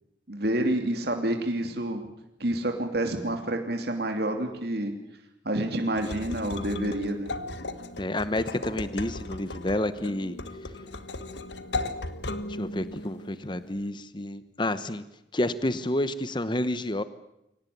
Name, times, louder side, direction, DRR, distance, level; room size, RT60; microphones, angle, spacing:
voice 1, 0.3-2.0 2.4-4.9 5.4-7.3, right 1 dB, 60° right, 4 dB, 3.0 m, -28 dB
sound 1, 6.0-13.9, left 2 dB, 75° left, 1.6 m, -36 dB
voice 2, 8.0-10.3 12.6-15.0 15.3-17.0, left 1 dB, 25° left, 13 dB, 1.0 m, -29 dB
24.0 x 18.5 x 9.4 m, 0.87 s
head